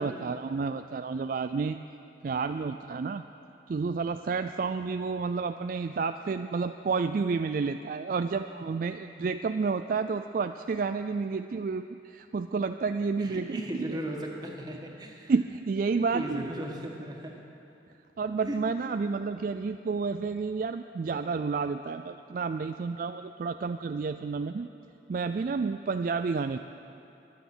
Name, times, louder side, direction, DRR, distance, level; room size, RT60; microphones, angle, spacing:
voice 1, 0.0-1.8 2.2-3.2 3.7-14.0 15.3-16.5 18.2-24.7 25.1-26.6, right 4 dB, 50° right, 9 dB, 0.3 m, -30 dB
voice 2, 13.2-15.3 16.1-17.4 18.5-18.6, right 1 dB, 20° right, 0 dB, 1.7 m, -36 dB
23.0 x 9.2 x 6.2 m, 2.8 s
head